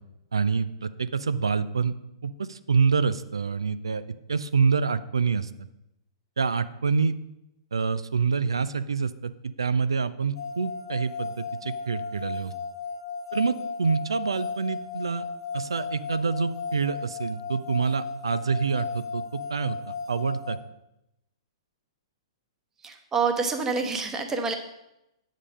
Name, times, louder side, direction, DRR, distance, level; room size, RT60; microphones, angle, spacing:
voice 1, 0.3-1.9 2.2-4.0 4.3-5.5 6.4-7.1 7.7-12.5 13.3-15.2 15.5-19.8 20.1-20.6, right 5 dB, 70° right, 14 dB, 0.5 m, -26 dB
sound 1, 10.3-20.6, left 5 dB, 55° left, 1.3 m, -35 dB
voice 2, 22.8-24.5, right 4 dB, 15° right, 5 dB, 1.0 m, -27 dB
9.6 x 5.2 x 5.3 m, 0.87 s
figure-of-eight pair, 110°, 3 cm